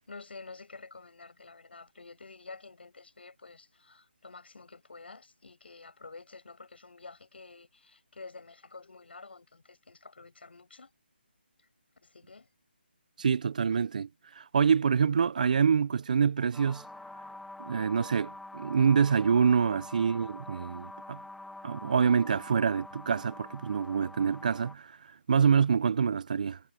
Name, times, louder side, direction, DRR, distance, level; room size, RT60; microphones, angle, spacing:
voice 1, 0.0-10.9 12.0-12.5 19.6-19.9, left 3 dB, 70° left, 6.3 m, -49 dB
voice 2, 13.2-14.1 14.4-16.8 17.6-21.2 21.6-25.0 25.3-26.6, right 6 dB, 45° right, 0.5 m, -26 dB
Dark noisy drone, 16.5-24.7, left 2 dB, ahead, 1.1 m, -46 dB
figure-of-eight pair, 160°, 6 cm